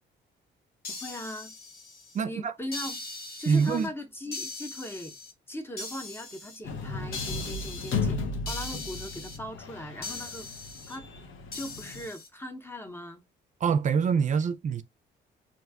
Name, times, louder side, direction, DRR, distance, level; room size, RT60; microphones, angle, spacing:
sound 1, 0.8-2.2 2.7-3.9 4.3-5.3 5.8-6.6 7.1-8.0 8.5-9.4 10.0-11.0 11.5-12.3, left 3 dB, 50° left, 1.0 m, -40 dB
voice 1, 0.9-1.5 2.2-3.0 3.4-5.2 5.5-10.5 10.9-11.1 11.5-13.2, left 1 dB, 10° left, 0.7 m, -39 dB
voice 2, 2.1-2.5 3.5-3.9 13.6-14.8, right 6 dB, 40° right, 0.4 m, -25 dB
sound 2, 6.6-12.1, left 4 dB, 75° left, 0.8 m, -35 dB
2.6 x 2.2 x 3.4 m
cardioid pair, 90°, 20 cm